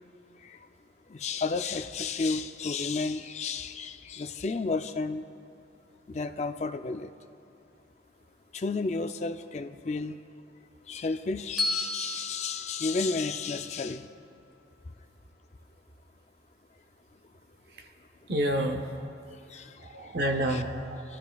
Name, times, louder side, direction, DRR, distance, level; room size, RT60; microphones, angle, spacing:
voice 1, 1.1-5.3 6.1-7.1 8.5-10.2 10.9-14.1 19.5-19.7 20.5-20.6, left 4 dB, 35° left, 9 dB, 0.4 m, -32 dB
Bell, 11.6-13.8, left 2 dB, ahead, 2.2 m, -34 dB
voice 2, 18.3-19.1 19.8-21.0, right 1 dB, 55° right, 3 dB, 0.8 m, -29 dB
26.5 x 12.5 x 2.3 m, 2.5 s
head